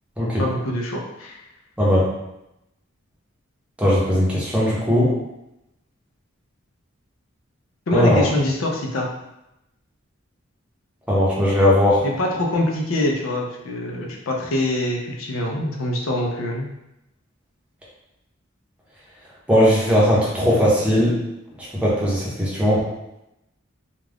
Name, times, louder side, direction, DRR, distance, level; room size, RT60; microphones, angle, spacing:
voice 1, 0.4-1.4 7.9-9.1 12.0-16.7, left 1 dB, 75° left, 0 dB, 0.5 m, -24 dB
voice 2, 1.8-2.1 3.8-5.2 7.9-8.2 11.1-12.0 19.5-21.2 21.6-22.9, equal, 5° right, -7 dB, 0.8 m, -18 dB
2.4 x 2.3 x 3.4 m, 0.88 s
head